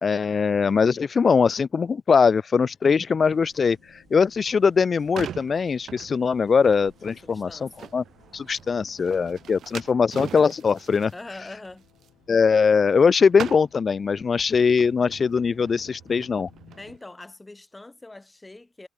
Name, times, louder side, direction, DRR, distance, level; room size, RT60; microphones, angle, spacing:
voice 1, 0.0-3.8 4.1-8.0 8.3-11.1 12.3-16.5, left 5 dB, 40° left, 0.4 m, -21 dB
sound 1, 2.4-17.0, left 13 dB, 80° left, 7.6 m, -58 dB
sound 2, 3.2-9.9, right 7 dB, 50° right, 6.8 m, -61 dB
sound 3, 4.7-13.1 13.3-17.0, right 10 dB, 65° right, 0.8 m, -42 dB
voice 2, 7.2-8.0 8.3-8.4 11.1-11.9 16.8-18.9, left 2 dB, 15° left, 3.3 m, -43 dB
cardioid pair, 90°, 0 cm